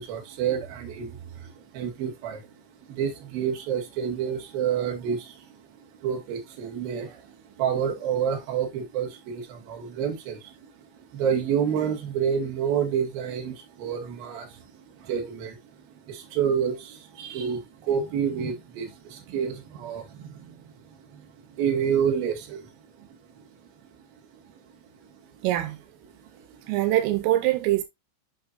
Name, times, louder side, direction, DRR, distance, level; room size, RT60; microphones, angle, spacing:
voice 1, 0.0-2.5 2.8-23.5 24.4-24.6 24.9-25.4 26.1-26.7, right 8 dB, 60° right, 3.1 m, -29 dB
voice 2, 25.4-25.8 26.7-27.8, right 15 dB, 85° right, 3.7 m, -23 dB
8.6 x 6.2 x 2.6 m
omnidirectional pair, 5.7 m